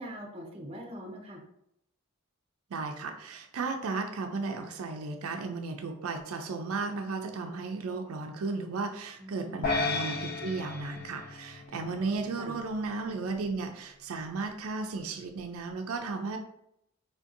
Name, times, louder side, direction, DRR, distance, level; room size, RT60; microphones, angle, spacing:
voice 1, 0.0-1.4 9.2-9.6 11.8-12.5, equal, 25° right, 0 dB, 0.5 m, -43 dB
voice 2, 2.7-16.4, right 4 dB, 85° right, 4 dB, 0.4 m, -34 dB
sound 1, 9.6-12.1, left 3 dB, 50° left, 0.3 m, -33 dB
3.6 x 2.6 x 2.5 m, 0.77 s
head